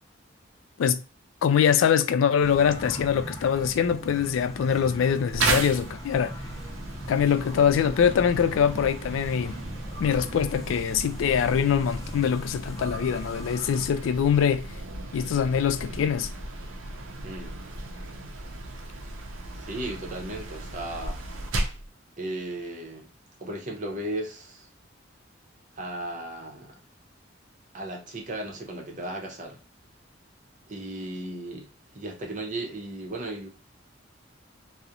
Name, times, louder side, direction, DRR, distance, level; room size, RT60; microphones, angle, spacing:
voice 1, 1.4-6.3 7.1-9.6 10.0-14.7 15.1-16.3, left 7 dB, 90° left, 0.3 m, -23 dB
sound 1, 2.4-13.8, equal, 20° left, 0.7 m, -40 dB
sound 2, 5.4-21.9, right 2 dB, 90° right, 0.5 m, -35 dB
voice 2, 17.2-17.6 19.6-21.2 22.2-23.1 23.4-24.7 25.7-26.7 27.7-29.6 30.7-31.7 31.9-33.5, right 1 dB, 40° right, 0.7 m, -35 dB
2.4 x 2.0 x 2.8 m
head